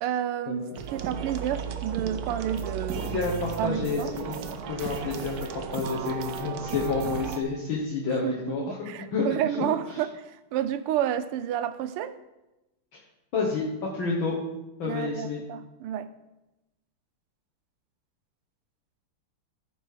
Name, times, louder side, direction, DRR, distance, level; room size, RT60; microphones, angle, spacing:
voice 1, 0.0-3.2 3.6-4.1 5.1-5.2 8.2-12.2 14.8-16.1, right 10 dB, 90° right, 12 dB, 1.6 m, -30 dB
sound 1, 0.7-7.4, right 7 dB, 65° right, 1.0 m, -34 dB
voice 2, 2.9-9.3 9.6-9.7 12.9-13.0 13.3-13.7 13.9-14.4 14.8-15.4, left 4 dB, 65° left, -4 dB, 2.0 m, -30 dB
14.0 x 5.4 x 4.9 m, 0.98 s
omnidirectional pair, 2.4 m